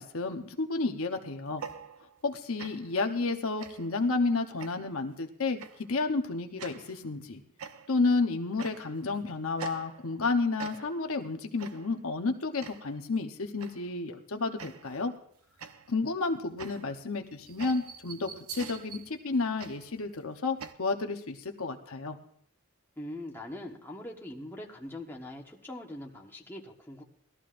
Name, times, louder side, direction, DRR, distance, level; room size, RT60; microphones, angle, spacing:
voice 1, 0.0-1.6 2.2-7.4 7.9-15.1 15.9-22.2, left 3 dB, 70° left, 4 dB, 0.9 m, -31 dB
sound 1, 1.5-2.3 2.6-3.0 3.6-4.0 4.6-5.0 5.6-5.9 6.6-7.0 7.6-8.1 8.6-9.1 9.6-10.3 10.6-11.1 11.6-12.0 12.6-13.0 13.6-14.0 14.6-15.1 15.6-20.7, right 6 dB, 75° right, 0.7 m, -45 dB
voice 2, 23.0-27.0, left 1 dB, 10° left, -1 dB, 1.3 m, -42 dB
19.5 x 13.5 x 2.5 m, 0.64 s
head